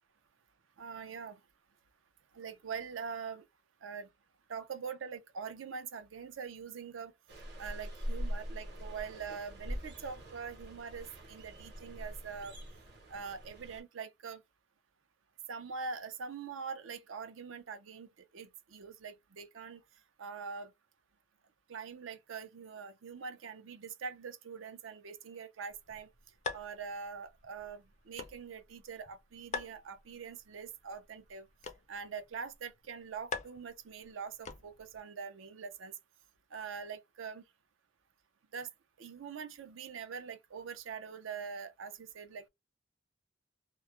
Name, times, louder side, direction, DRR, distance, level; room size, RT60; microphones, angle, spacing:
voice 1, 0.8-1.4 2.3-3.4 3.8-4.1 4.5-7.1 7.6-12.6 13.1-14.4 15.5-19.8 20.2-20.7 21.7-26.1 26.5-31.5 31.9-35.9 36.5-37.4 38.5-38.7 39.0-42.5, right 6 dB, 80° right, 0.5 m, -43 dB
sound 1, 7.3-13.8, equal, 55° right, 0.8 m, -43 dB
sound 2, 25.7-35.0, left 4 dB, 35° left, 0.3 m, -46 dB
2.2 x 2.0 x 2.9 m
head